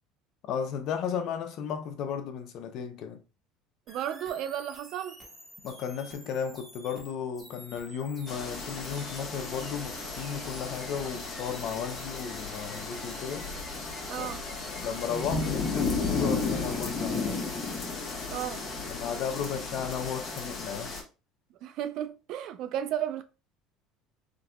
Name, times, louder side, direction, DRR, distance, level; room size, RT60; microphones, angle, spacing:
voice 1, 0.4-3.2 5.6-13.5 14.2-14.3 14.7-17.4 18.9-20.9, left 7 dB, 55° left, 0.6 m, -34 dB
sound 1, 3.9-17.8, right 1 dB, 15° right, 1.5 m, -49 dB
voice 2, 3.9-5.2 14.1-14.4 18.3-18.6 21.6-23.2, right 10 dB, 60° right, 0.4 m, -33 dB
sound 2, 8.3-21.0, left 4 dB, 30° left, 1.2 m, -34 dB
3.8 x 2.7 x 2.3 m
supercardioid pair, 115°, 0 cm